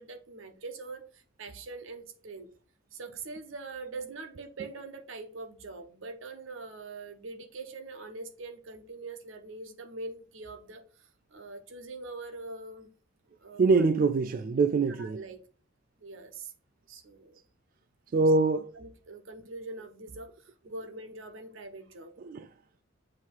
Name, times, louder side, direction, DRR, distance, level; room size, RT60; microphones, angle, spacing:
voice 1, 0.0-2.5 2.9-10.8 11.3-12.9 13.4-13.6 14.9-15.4 16.0-16.5 16.9-17.4 18.7-20.3 20.6-22.1, right 3 dB, 75° right, 1.0 m, -43 dB
voice 2, 13.6-15.2 18.1-18.7 22.2-22.5, right 3 dB, 45° right, 0.3 m, -24 dB
7.5 x 2.9 x 4.5 m
head